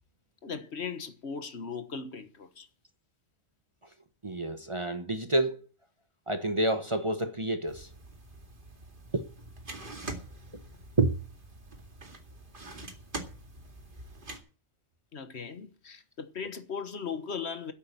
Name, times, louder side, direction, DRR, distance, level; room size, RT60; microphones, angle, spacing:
voice 1, 0.4-2.7 15.1-17.7, left 6 dB, 60° left, 1.5 m, -38 dB
voice 2, 4.2-5.6 6.3-7.9 9.1-9.2 11.0-11.1, right 2 dB, 25° right, 0.9 m, -28 dB
sound 1, 7.7-14.4, right 2 dB, 45° right, 2.3 m, -44 dB
10.0 x 8.5 x 8.7 m
omnidirectional pair, 1.3 m